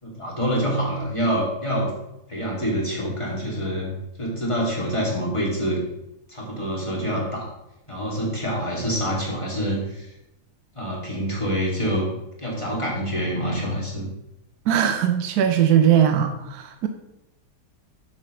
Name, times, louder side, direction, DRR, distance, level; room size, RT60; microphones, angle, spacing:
voice 1, 0.0-1.9 2.3-3.9 4.2-5.8 6.3-7.5 7.9-10.1 10.7-12.1 12.4-14.1, equal, 20° left, -4 dB, 2.6 m, -26 dB
voice 2, 14.7-16.9, right 9 dB, 70° right, 7 dB, 1.2 m, -19 dB
13.0 x 7.3 x 3.2 m, 0.90 s
omnidirectional pair, 1.8 m